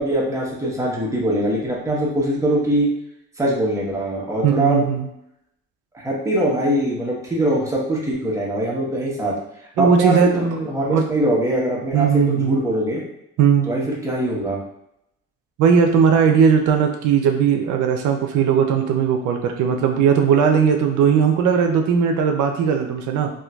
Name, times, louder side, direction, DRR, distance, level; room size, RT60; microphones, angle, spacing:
voice 1, 0.0-2.9 3.4-4.8 5.9-9.3 9.8-13.0 13.6-14.6, right 1 dB, 10° right, -4 dB, 1.0 m, -22 dB
voice 2, 4.4-5.1 9.8-10.4 10.8-11.0 11.9-12.6 13.4-13.9 15.6-23.3, right 7 dB, 85° right, 4 dB, 0.5 m, -18 dB
3.6 x 2.6 x 2.2 m, 0.80 s
cardioid pair, 90°, 30 cm